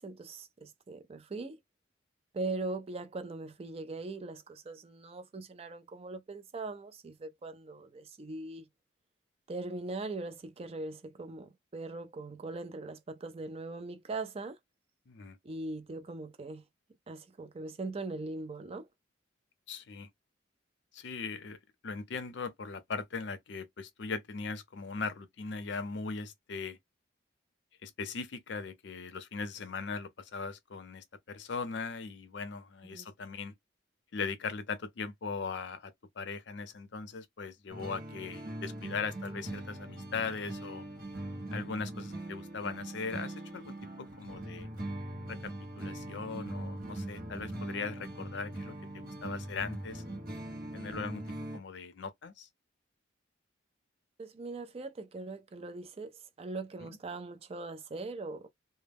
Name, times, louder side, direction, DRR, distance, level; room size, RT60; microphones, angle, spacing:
voice 1, 0.0-1.6 2.3-8.7 9.5-14.6 15.4-16.6 17.1-18.9 32.9-33.1 54.2-58.5, right 3 dB, 30° right, 0.4 m, -40 dB
voice 2, 15.1-15.4 19.7-20.1 20.9-21.6 21.8-26.8 27.8-33.5 34.1-40.8 41.5-44.7 45.3-50.0 50.7-51.2 51.5-52.5 56.8-57.0, left 4 dB, 65° left, 0.5 m, -39 dB
sound 1, 37.7-51.6, right 1 dB, 50° right, 0.8 m, -41 dB
2.2 x 2.0 x 3.3 m
head